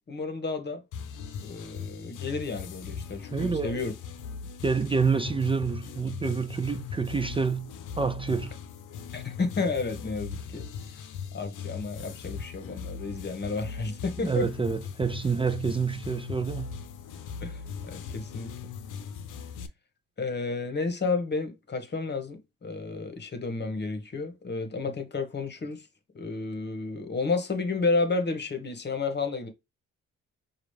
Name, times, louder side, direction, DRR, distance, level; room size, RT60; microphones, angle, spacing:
voice 1, 0.1-0.8 1.4-3.9 9.1-10.6 11.3-14.5 17.4-18.5 20.2-25.8 26.1-29.5, left 3 dB, 35° left, 1.2 m, -31 dB
sound 1, 0.9-19.7, left 6 dB, 85° left, 0.7 m, -39 dB
voice 2, 3.3-3.8 4.6-7.7 8.0-8.5 14.2-16.7, right 5 dB, 20° right, 0.4 m, -28 dB
5.0 x 2.4 x 3.2 m
cardioid pair, 90°, 30 cm